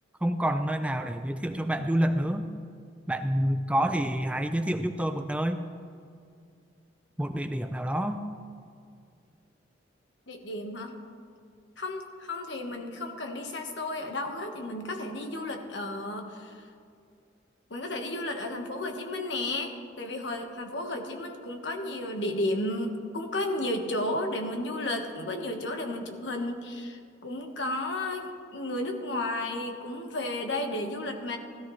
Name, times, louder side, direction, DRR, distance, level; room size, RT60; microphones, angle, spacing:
voice 1, 0.2-2.5 3.1-5.6 7.2-8.2, right 1 dB, 5° right, 8 dB, 0.4 m, -28 dB
voice 2, 10.3-10.9 11.8-16.7 17.7-31.4, left 1 dB, 70° left, 4 dB, 1.3 m, -33 dB
16.5 x 13.0 x 3.2 m, 2.3 s
head